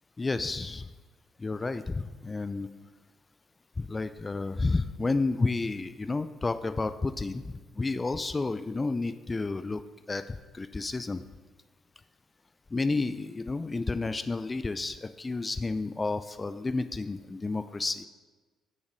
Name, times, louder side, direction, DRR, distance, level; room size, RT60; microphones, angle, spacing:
voice 1, 0.2-0.9 1.4-2.7 3.8-9.8 10.1-11.2 12.7-18.1, left 3 dB, 25° left, 11 dB, 0.4 m, -31 dB
6.5 x 5.5 x 5.1 m, 1.3 s
hypercardioid pair, 45°, 0 cm